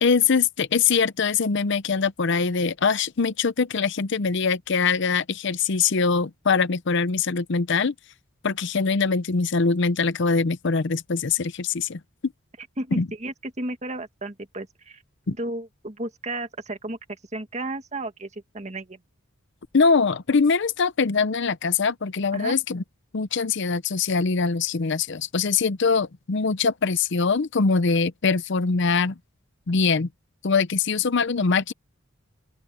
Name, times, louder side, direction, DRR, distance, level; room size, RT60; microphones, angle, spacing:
voice 1, 0.0-7.9 8.4-12.3 12.9-13.1 15.3-15.4 19.7-22.8 23.1-29.2 29.7-30.1 30.4-31.7, left 5 dB, 60° left, 0.6 m, -23 dB
voice 2, 12.6-15.0 15.4-19.0 22.3-22.6, right 2 dB, 35° right, 1.8 m, -33 dB
open air
head